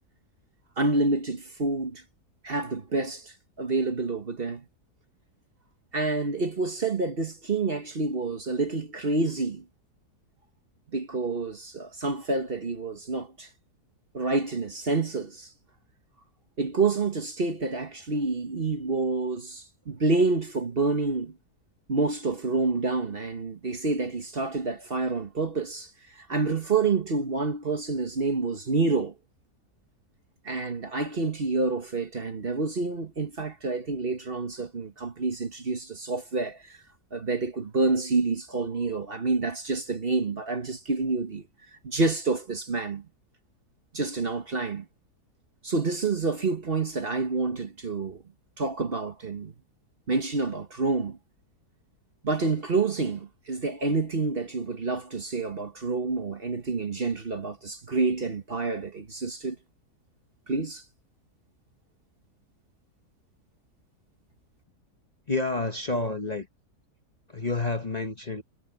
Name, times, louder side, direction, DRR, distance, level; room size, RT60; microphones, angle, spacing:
voice 1, 0.8-2.0 2.4-4.6 5.9-9.6 10.9-13.5 14.1-15.5 16.6-21.3 21.9-29.1 30.4-36.8 37.1-41.4 41.8-43.1 43.9-44.9 45.6-48.2 48.6-49.5 50.1-51.2 52.2-59.6 60.5-60.8, right 3 dB, 40° right, 1.4 m, -28 dB
voice 2, 65.3-66.5 67.3-68.4, left 3 dB, 30° left, 1.1 m, -29 dB
omnidirectional pair, 1.6 m